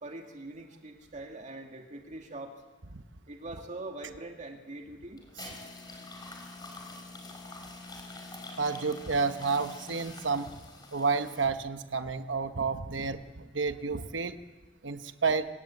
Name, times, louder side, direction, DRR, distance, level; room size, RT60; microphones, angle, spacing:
voice 1, 0.0-2.6 3.3-5.2, right 2 dB, 40° right, 3 dB, 2.4 m, -43 dB
sound 1, 5.2-11.5, left 2 dB, 20° left, 4.6 m, -45 dB
voice 2, 8.6-10.5 10.9-14.3 14.8-15.5, right 4 dB, 70° right, 9 dB, 1.1 m, -30 dB
26.5 x 18.5 x 8.4 m, 1.2 s
head